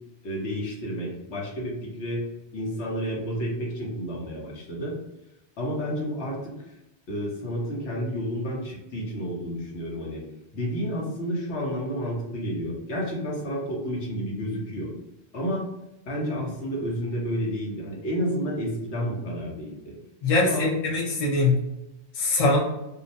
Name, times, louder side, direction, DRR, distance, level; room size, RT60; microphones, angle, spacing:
voice 1, 0.2-2.2 2.5-5.0 5.6-6.5 7.1-10.2 10.5-14.9 15.3-15.7 16.1-19.9 20.4-20.7, equal, 80° left, -3 dB, 1.2 m, -30 dB
voice 2, 20.2-21.6 22.1-22.6, left 3 dB, 35° left, -3 dB, 0.8 m, -22 dB
2.7 x 2.3 x 4.0 m, 0.90 s
omnidirectional pair, 1.1 m